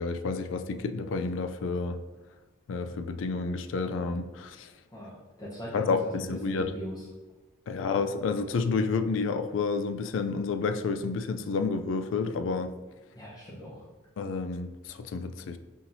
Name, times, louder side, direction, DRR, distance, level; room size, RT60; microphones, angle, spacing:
voice 1, 0.0-2.0 2.7-4.7 5.7-6.7 7.7-12.7 14.2-15.6, left 4 dB, 80° left, 9 dB, 0.3 m, -30 dB
voice 2, 4.9-7.0 13.1-13.8, equal, 20° left, -8 dB, 0.8 m, -40 dB
5.5 x 2.9 x 2.6 m, 1.2 s
head